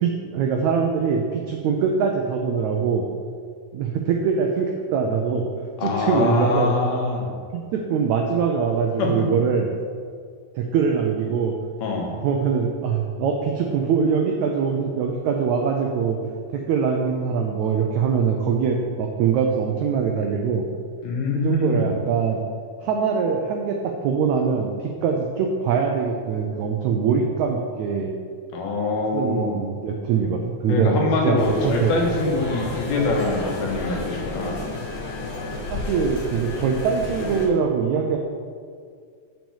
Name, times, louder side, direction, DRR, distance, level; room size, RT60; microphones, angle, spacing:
voice 1, 0.0-3.1 3.7-5.5 5.8-6.7 7.5-9.7 10.5-11.6 12.2-16.2 16.5-20.7 21.3-22.4 22.8-28.1 29.1-32.0 35.7-38.2, right 6 dB, 90° right, 2 dB, 1.6 m, -23 dB
voice 2, 5.8-7.3 9.0-9.3 11.8-12.2 21.0-21.9 28.5-29.6 30.7-34.6, left 2 dB, 90° left, -1 dB, 3.4 m, -24 dB
sound 1, 31.4-37.5, left 2 dB, 55° left, 2.6 m, -31 dB
6.8 x 6.1 x 7.2 m, 2.1 s
omnidirectional pair, 4.2 m